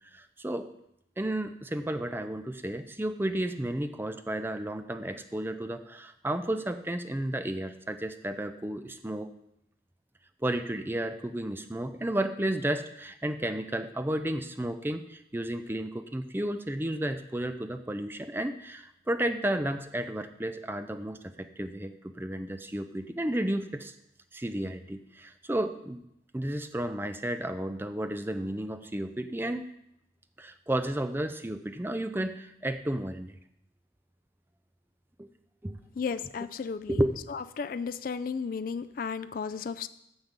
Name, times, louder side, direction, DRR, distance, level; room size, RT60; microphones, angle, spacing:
voice 1, 0.1-0.7 1.2-9.3 10.4-23.9 24.3-26.0 26.3-29.6 30.4-33.4 35.2-35.3 35.6-35.8 36.9-37.1, right 1 dB, 10° right, 9 dB, 0.5 m, -32 dB
voice 2, 36.0-37.0 37.6-39.9, left 5 dB, 45° left, 11 dB, 0.3 m, -34 dB
9.5 x 5.2 x 7.3 m, 0.79 s
head